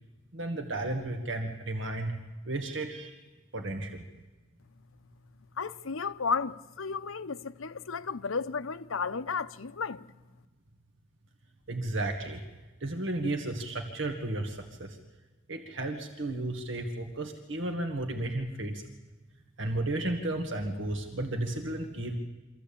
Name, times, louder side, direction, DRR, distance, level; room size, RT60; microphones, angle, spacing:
voice 1, 0.3-2.2 2.5-3.2 3.5-4.0 11.7-12.4 12.8-15.0 15.5-18.8 19.6-22.2, right 2 dB, 65° right, 1.9 m, -33 dB
voice 2, 5.6-10.0, left 5 dB, 80° left, 0.8 m, -33 dB
25.0 x 15.0 x 8.6 m
head